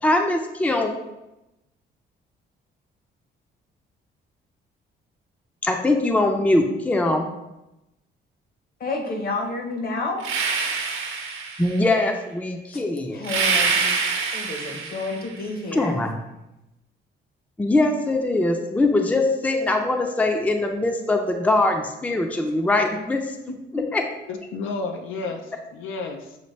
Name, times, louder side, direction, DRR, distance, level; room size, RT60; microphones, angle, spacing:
voice 1, 0.0-0.9 5.6-7.3 11.6-13.3 15.7-16.1 17.6-23.2 23.7-24.0, left 2 dB, 5° left, 4 dB, 0.5 m, -22 dB
voice 2, 8.8-10.2 12.7-12.8 13.1-14.0 14.3-16.0 23.8-23.9, left 3 dB, 50° left, 3 dB, 1.0 m, -30 dB
sound 1, 10.2-11.9 13.2-15.3, right 5 dB, 85° right, 0.8 m, -25 dB
voice 3, 24.3-26.4, left 3 dB, 85° left, 4 dB, 0.5 m, -32 dB
6.4 x 2.5 x 3.1 m, 0.94 s
cardioid pair, 90°, 20 cm